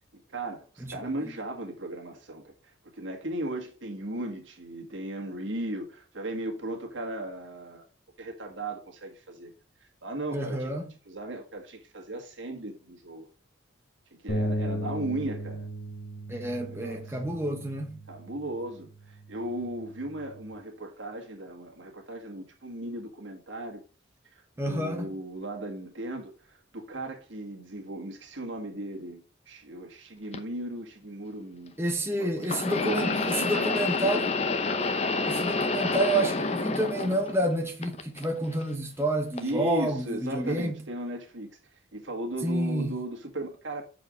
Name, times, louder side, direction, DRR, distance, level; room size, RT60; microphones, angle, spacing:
voice 1, 0.3-7.9 8.2-9.5 10.0-10.7 11.1-13.3 14.2-15.7 16.6-17.2 18.1-23.8 24.3-26.3 26.7-31.8 32.0-32.5 32.8-34.0 39.4-41.6 41.9-43.9, right 1 dB, 75° right, 1.8 m, -36 dB
voice 2, 10.3-10.9 16.3-17.9 24.6-25.1 31.8-34.3 35.3-40.7 42.4-42.9, right 1 dB, 15° right, 1.0 m, -29 dB
sound 1, 14.3-20.5, equal, 55° left, 1.7 m, -36 dB
sound 2, 30.3-30.4 32.4-37.5 37.8-38.6 39.4-39.5 40.5-40.6, left 3 dB, 35° left, 0.7 m, -29 dB
6.5 x 4.8 x 5.1 m
head